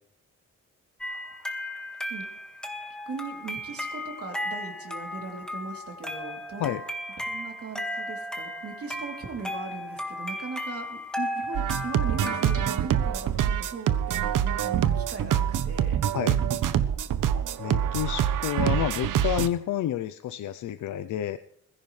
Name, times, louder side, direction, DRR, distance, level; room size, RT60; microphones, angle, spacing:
sound 1, 1.0-12.7, left 1 dB, ahead, 1.7 m, -35 dB
voice 1, 3.1-6.7 7.3-16.1, right 4 dB, 45° right, 2 dB, 3.2 m, -39 dB
sound 2, 11.5-19.5, right 9 dB, 80° right, 0.9 m, -25 dB
voice 2, 17.6-21.4, left 11 dB, 70° left, 12 dB, 0.6 m, -29 dB
21.5 x 15.0 x 3.3 m, 0.74 s
wide cardioid pair, 155°, 32 cm